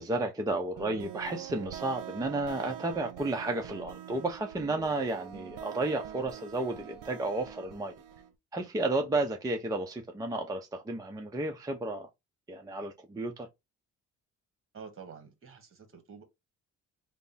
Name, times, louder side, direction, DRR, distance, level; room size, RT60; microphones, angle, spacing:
voice 1, 0.0-7.9 8.5-12.1 12.5-13.5, right 2 dB, 10° right, 0.5 m, -32 dB
sound 1, 0.8-8.3, right 10 dB, 75° right, 0.7 m, -44 dB
voice 2, 14.7-16.2, right 6 dB, 40° right, 1.3 m, -48 dB
3.3 x 2.0 x 4.0 m
cardioid pair, 105°, 32 cm